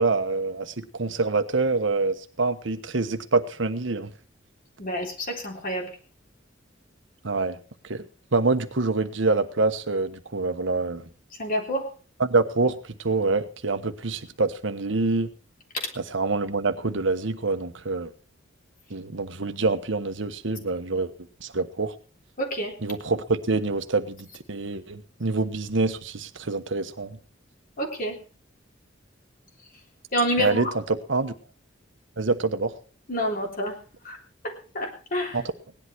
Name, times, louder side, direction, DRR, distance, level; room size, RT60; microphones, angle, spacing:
voice 1, 0.0-4.1 7.2-7.6 7.8-8.0 8.3-11.1 12.2-15.3 16.0-18.1 18.9-21.1 21.4-21.9 22.8-27.2 30.4-31.3 32.2-32.7 35.3-35.5, right 3 dB, 70° right, 8 dB, 1.2 m, -26 dB
voice 2, 4.8-5.9 11.4-11.9 22.4-22.8 27.8-28.2 30.1-30.8 33.1-33.8 34.0-34.2 34.4-35.4, equal, 45° left, 1 dB, 3.5 m, -28 dB
17.5 x 11.0 x 4.6 m, 0.37 s
head